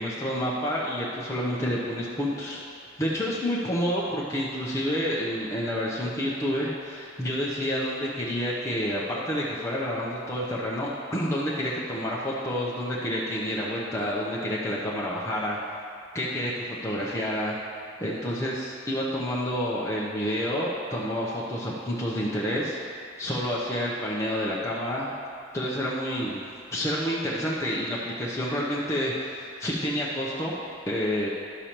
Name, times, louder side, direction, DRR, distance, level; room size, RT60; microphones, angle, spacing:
voice 1, 0.0-2.6 3.0-15.6 16.1-17.5 18.0-22.8 23.2-25.1 25.5-26.4 26.7-30.6 30.9-31.3, equal, 15° left, -6 dB, 0.7 m, -29 dB
11.0 x 6.8 x 3.0 m, 2.5 s
head